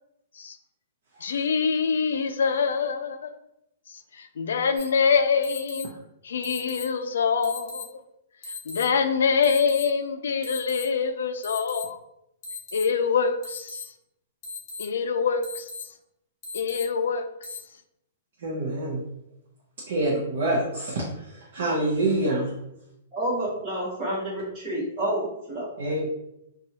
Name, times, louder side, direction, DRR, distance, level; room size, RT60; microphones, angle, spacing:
voice 1, 1.2-3.3 4.2-5.9 6.2-7.9 8.7-12.0 12.7-13.8 14.8-15.6 16.5-17.3, left 5 dB, 90° left, 0.3 m, -25 dB
sound 1, 4.8-4.9 5.4-5.8 6.4-6.8 7.4-7.8 8.4-8.8 9.4-9.8 10.4-10.8 11.4-11.8 12.4-12.8 13.4-13.8 14.4-14.8 15.4-15.8 16.4-16.8 17.4-17.6, left 3 dB, 25° left, 0.6 m, -37 dB
voice 2, 18.4-19.0 19.9-21.0 21.3-22.5 25.8-26.1, right 1 dB, 55° right, 0.5 m, -26 dB
voice 3, 23.1-25.7, right 1 dB, 20° right, 1.1 m, -29 dB
2.7 x 2.2 x 2.8 m
hypercardioid pair, 175°, 0 cm